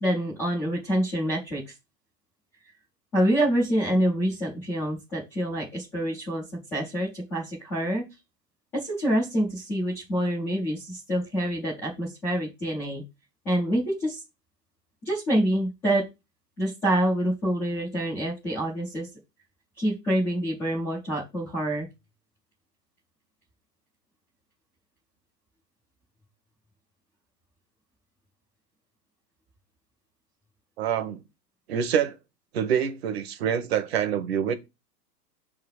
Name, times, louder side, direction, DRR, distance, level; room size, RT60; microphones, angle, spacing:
voice 1, 0.0-1.7 3.1-6.4 6.7-8.0 8.7-13.0 13.4-14.2 15.0-16.0 16.6-19.1 19.8-21.9, right 1 dB, 5° left, 0.4 m, -26 dB
voice 2, 30.8-31.2 31.7-32.2 32.5-34.5, right 8 dB, 40° right, 1.0 m, -26 dB
6.1 x 3.8 x 6.1 m
hypercardioid pair, 160°, 49 cm